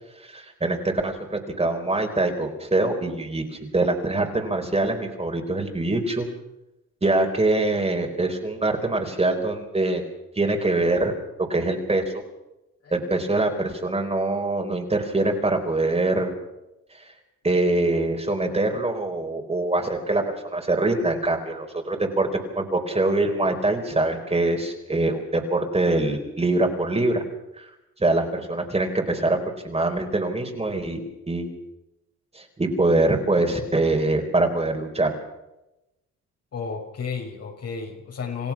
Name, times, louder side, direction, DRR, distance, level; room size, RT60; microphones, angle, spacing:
voice 1, 0.2-6.3 7.0-10.0 10.4-11.1 11.4-12.0 12.9-16.3 16.9-17.0 17.4-22.3 22.5-27.2 27.6-27.7 28.0-29.4 29.6-31.0 31.3-31.5 32.3-35.1, right 2 dB, 20° right, 3 dB, 4.5 m, -24 dB
voice 2, 36.5-38.5, left 5 dB, 55° left, 2 dB, 6.2 m, -32 dB
28.5 x 16.0 x 6.2 m, 0.92 s
cardioid pair, 90°, 30 cm